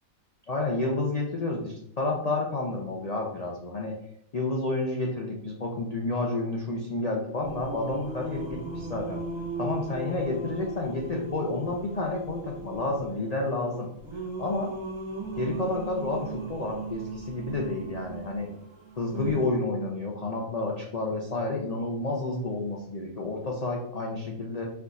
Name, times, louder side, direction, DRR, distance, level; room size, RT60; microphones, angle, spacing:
voice 1, 0.5-3.9 4.3-9.2 9.6-13.9 14.4-14.7 15.4-18.5 19.0-24.6, left 2 dB, 90° left, 0 dB, 0.3 m, -30 dB
Singing, 7.4-19.5, right 3 dB, 25° right, 0.8 m, -38 dB
4.5 x 2.4 x 3.9 m, 0.71 s
omnidirectional pair, 1.5 m